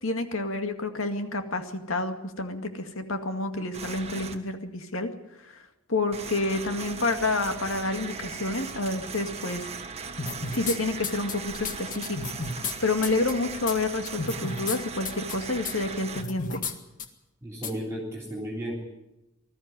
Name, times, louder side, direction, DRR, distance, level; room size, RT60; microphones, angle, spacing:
voice 1, 0.0-5.1 5.4-5.6 5.9-9.7 10.5-12.2 12.5-16.6, left 2 dB, 75° left, 6 dB, 2.1 m, -29 dB
sound 1, 3.7-4.3 6.1-16.2, right 5 dB, 30° right, 1.6 m, -38 dB
sound 2, 10.2-10.8 11.0-12.7 13.0-13.3 13.7-13.8 14.0-14.8 15.0-15.3 15.6-15.7 16.1-16.7 17.0-17.1 17.6-17.7, left 4 dB, 40° left, 1.9 m, -32 dB
voice 2, 17.4-18.7, equal, 15° right, -1 dB, 3.5 m, -34 dB
20.0 x 13.5 x 9.8 m, 0.94 s
head